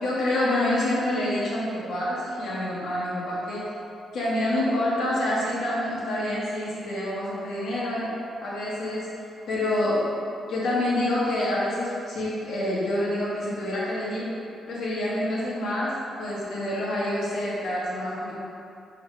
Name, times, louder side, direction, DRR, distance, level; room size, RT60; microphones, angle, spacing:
voice 1, 0.0-3.7 4.1-8.1 8.4-9.1 9.5-10.0 10.5-14.3 14.7-18.3, left 1 dB, 75° left, -7 dB, 1.2 m, -27 dB
4.5 x 3.2 x 3.0 m, 2.6 s
cardioid pair, 85°, 0 cm